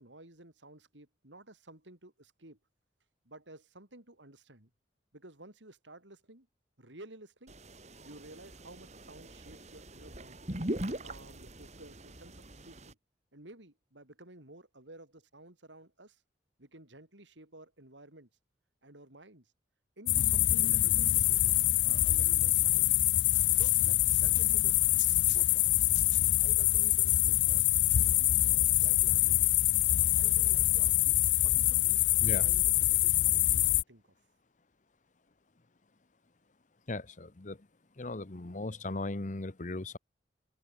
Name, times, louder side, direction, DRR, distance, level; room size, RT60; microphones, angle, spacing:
voice 1, 0.0-2.6 3.3-4.7 5.1-6.5 6.8-7.6 8.0-10.4 10.8-13.0 13.3-16.2 16.6-18.3 18.8-19.5 20.0-21.6 21.8-22.9 23.5-24.9 25.3-25.8 26.3-29.5 29.8-34.1, right 1 dB, 85° right, 5.3 m, -53 dB
sound 1, 7.5-12.9, right 1 dB, 40° right, 3.6 m, -41 dB
sound 2, 20.1-33.8, left 15 dB, 80° left, 0.6 m, -25 dB
voice 2, 36.9-37.7 38.0-40.0, left 2 dB, 45° left, 0.9 m, -37 dB
head